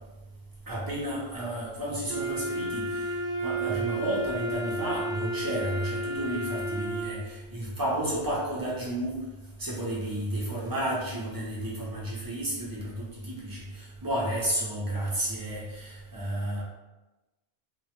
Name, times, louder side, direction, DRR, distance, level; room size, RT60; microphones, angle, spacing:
voice 1, 0.7-3.1 3.4-9.2 9.6-16.6, right 1 dB, 35° right, -5 dB, 0.3 m, -32 dB
Wind instrument woodwind instrument, 2.1-7.2, right 1 dB, 80° right, 0.8 m, -32 dB
2.1 x 2.1 x 2.8 m, 1.1 s
omnidirectional pair, 1.1 m